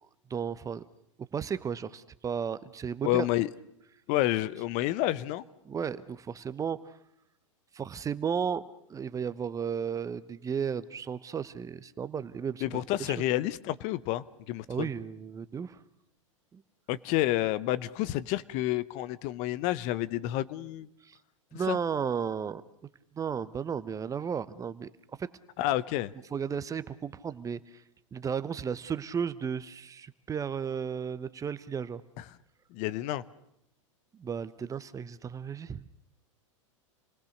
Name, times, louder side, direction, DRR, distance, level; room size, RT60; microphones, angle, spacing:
voice 1, 0.3-0.8 1.3-3.3 5.6-7.0 7.7-13.1 14.7-15.8 16.5-16.6 21.0-21.2 21.5-22.6 23.1-24.9 25.2-25.3 26.3-27.8 28.1-32.0 34.1-35.8, right 7 dB, 20° right, 15 dB, 0.9 m, -34 dB
voice 2, 3.0-3.5 4.1-5.4 12.6-14.9 16.9-20.9 21.7-21.8 25.6-26.1 32.7-33.2, left 15 dB, 45° left, 16 dB, 0.9 m, -29 dB
27.5 x 19.0 x 6.6 m, 0.76 s
hypercardioid pair, 100°, 17 cm